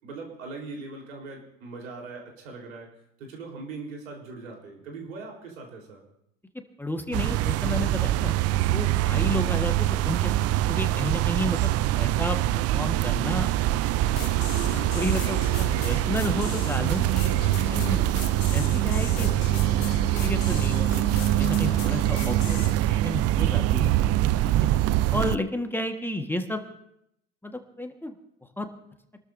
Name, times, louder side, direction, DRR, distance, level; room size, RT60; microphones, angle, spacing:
voice 1, 0.0-2.9 3.2-6.0 17.9-18.3, right 3 dB, 90° right, 0 dB, 4.0 m, -40 dB
voice 2, 6.8-8.3 8.7-13.5 14.1-14.3 14.6-17.0 17.6-18.0 18.5-19.3 20.1-20.9 21.2-23.9 24.5-24.7 25.1-26.6 27.4-28.1 28.6-28.7, left 1 dB, 5° left, 5 dB, 1.5 m, -32 dB
sound 1, 7.1-25.4, right 14 dB, 40° right, 0.5 m, -24 dB
sound 2, 14.1-22.7, left 6 dB, 60° left, 2.1 m, -37 dB
27.0 x 13.0 x 2.7 m, 0.77 s
hypercardioid pair, 85°, 39 cm